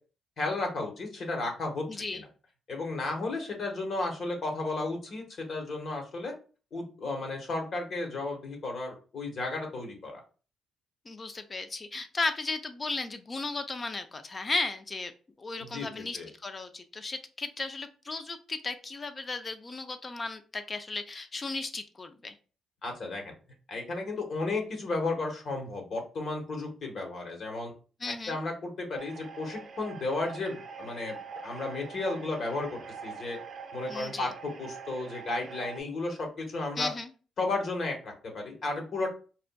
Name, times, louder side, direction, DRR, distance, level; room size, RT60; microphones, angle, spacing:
voice 1, 0.4-1.8 2.7-6.3 6.7-10.2 15.6-16.3 22.8-23.3 23.7-27.7 28.3-31.2 31.4-33.4 33.7-36.9 37.4-39.1, left 2 dB, 55° left, 2 dB, 1.1 m, -33 dB
voice 2, 1.9-2.2 11.1-15.1 15.4-22.4 28.0-28.4 33.9-34.3 36.8-37.1, left 3 dB, 30° left, 9 dB, 0.5 m, -35 dB
sound 1, 29.0-35.8, right 6 dB, 50° right, 0.5 m, -44 dB
4.3 x 2.4 x 2.2 m, 0.36 s
cardioid pair, 90°, 0 cm